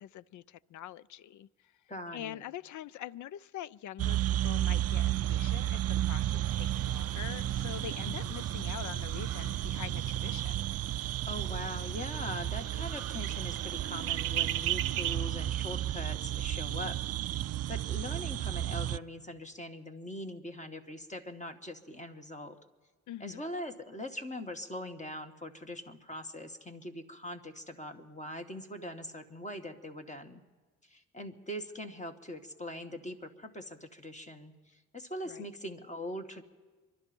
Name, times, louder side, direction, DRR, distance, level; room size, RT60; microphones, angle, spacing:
voice 1, 0.0-1.5 2.1-10.7 23.1-23.4 35.2-35.5, left 12 dB, 60° left, 20 dB, 0.5 m, -44 dB
voice 2, 1.9-2.4 8.0-8.4 11.3-22.6 23.2-30.4 30.8-36.4, left 1 dB, 20° left, 5 dB, 1.8 m, -42 dB
sound 1, 4.0-19.0, right 12 dB, 50° right, 0.4 m, -33 dB
sound 2, 6.5-15.2, right 13 dB, 85° right, 0.7 m, -40 dB
26.0 x 12.0 x 4.5 m, 1.3 s
hypercardioid pair, 50°, 33 cm